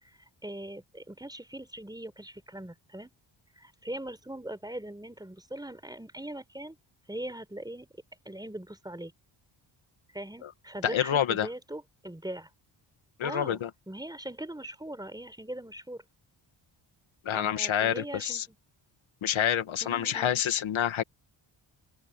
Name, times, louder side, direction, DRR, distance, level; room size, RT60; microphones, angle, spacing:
voice 1, 0.0-3.1 3.6-6.8 7.1-7.9 8.2-9.1 10.1-12.5 13.2-16.0 17.3-18.6 19.8-20.4, right 1 dB, 10° right, 4.4 m, -41 dB
voice 2, 10.8-11.5 13.2-13.7 17.3-18.5 19.2-21.0, left 9 dB, 75° left, 1.8 m, -27 dB
cardioid pair, 85°, 48 cm